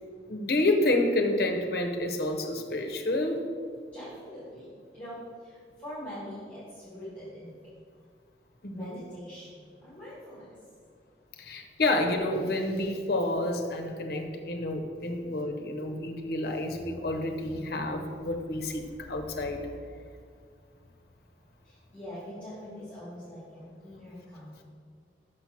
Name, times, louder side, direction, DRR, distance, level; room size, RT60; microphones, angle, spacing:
voice 1, 0.3-3.4 8.6-9.0 11.4-19.7, left 2 dB, 55° left, 4 dB, 0.7 m, -29 dB
voice 2, 3.9-7.5 8.7-10.5 21.6-24.6, equal, 10° left, -10 dB, 1.9 m, -43 dB
6.3 x 4.4 x 5.8 m, 2.1 s
head